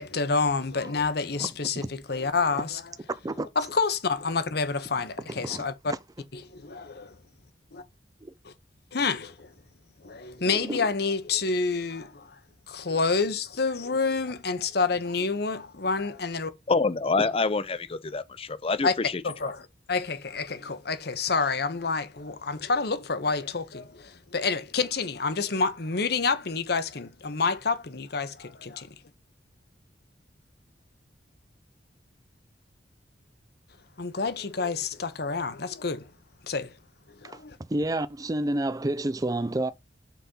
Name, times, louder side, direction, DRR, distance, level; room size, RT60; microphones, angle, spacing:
voice 1, 0.0-2.9 3.6-5.9 6.3-7.1 7.7-7.8 8.4-8.5 8.9-9.5 10.0-12.4 12.7-16.5 18.8-18.9 19.2-28.9 34.0-36.1 36.4-36.7 37.2-37.6, left 4 dB, 60° left, 1.0 m, -28 dB
voice 2, 5.3-5.6 8.2-8.3 10.7-10.9 37.7-39.7, right 1 dB, 20° right, 0.5 m, -29 dB
voice 3, 16.7-18.9 19.4-19.5, left 4 dB, 30° left, 0.6 m, -26 dB
5.9 x 4.3 x 5.4 m
head